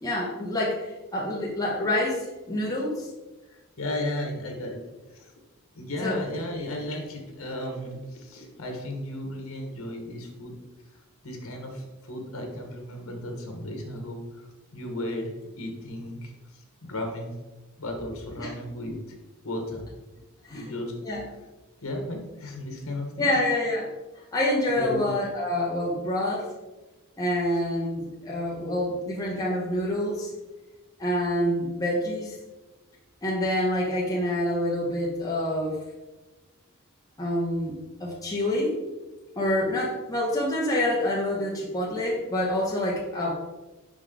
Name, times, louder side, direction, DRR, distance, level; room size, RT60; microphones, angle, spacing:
voice 1, 0.0-2.2 2.5-3.1 6.0-6.2 18.4-18.5 20.4-20.6 21.0-21.2 23.2-23.9 24.3-26.4 27.2-30.3 31.0-32.3 33.2-35.8 37.2-37.7 38.0-38.7 39.4-43.3, left 1 dB, 15° left, -5 dB, 1.0 m, -27 dB
voice 2, 3.5-4.8 5.1-5.3 5.7-10.5 11.2-17.3 17.8-19.0 19.4-19.8 20.5-20.9 21.8-23.3 24.7-25.0, left 1 dB, 80° left, 2 dB, 1.2 m, -35 dB
5.2 x 5.0 x 3.8 m, 1.2 s
head